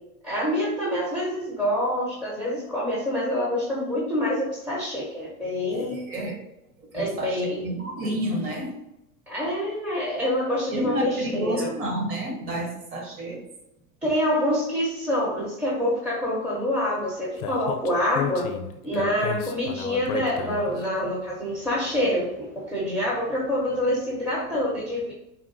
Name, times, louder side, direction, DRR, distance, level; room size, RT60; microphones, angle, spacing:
voice 1, 0.2-6.0 6.9-7.6 9.3-11.7 14.0-18.5 18.8-25.1, left 1 dB, 5° right, -5 dB, 0.4 m, -26 dB
voice 2, 5.7-6.4 6.9-8.7 10.7-13.4, right 1 dB, 30° right, 2 dB, 0.7 m, -30 dB
Speech, 17.4-20.8, left 9 dB, 80° left, 0.5 m, -32 dB
3.8 x 2.2 x 2.5 m, 0.87 s
supercardioid pair, 125°, 43 cm